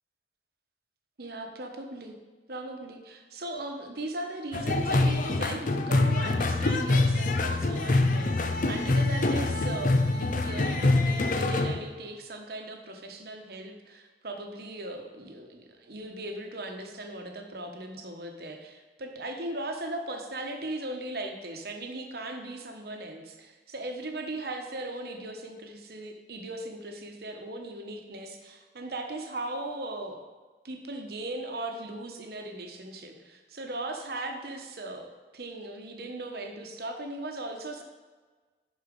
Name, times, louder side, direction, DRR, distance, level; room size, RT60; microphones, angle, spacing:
voice 1, 1.2-2.1 2.5-30.2 30.6-35.1 35.3-37.8, right 2 dB, 60° right, 4 dB, 1.1 m, -38 dB
sound 1, 4.5-11.8, left 2 dB, 45° left, 0.6 m, -25 dB
11.0 x 4.4 x 5.2 m, 1.4 s
head